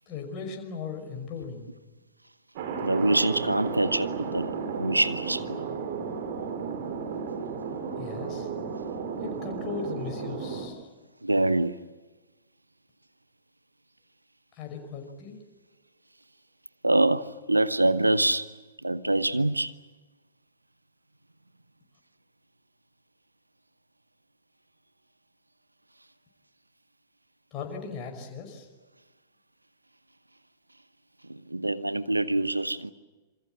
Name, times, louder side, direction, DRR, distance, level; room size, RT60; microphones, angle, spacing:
voice 1, 0.1-1.7 8.0-8.5 9.2-10.9 14.5-15.4 27.5-28.7, left 5 dB, 30° left, 5.5 m, -38 dB
Thunder, 2.6-10.7, right 5 dB, 45° right, 4.2 m, -34 dB
voice 2, 2.8-5.6 11.2-11.8 16.8-18.5 18.8-19.7 31.2-32.9, right 2 dB, 85° right, 1.0 m, -25 dB
27.0 x 24.5 x 7.6 m
figure-of-eight pair, 105°, 0 cm